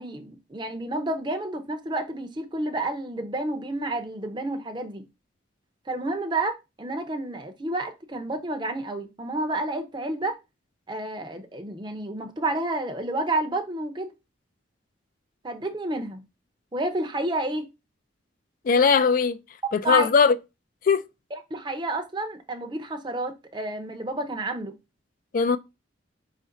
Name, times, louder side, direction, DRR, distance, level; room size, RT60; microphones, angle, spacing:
voice 1, 0.0-5.0 5.9-10.4 10.9-14.1 15.4-16.2 16.7-17.6 19.8-20.1 21.5-24.7, right 2 dB, 25° right, 0.6 m, -30 dB
voice 2, 18.6-19.4 19.7-20.4 20.8-21.0 25.3-25.6, left 5 dB, 45° left, 0.3 m, -19 dB
4.9 x 2.5 x 3.8 m
head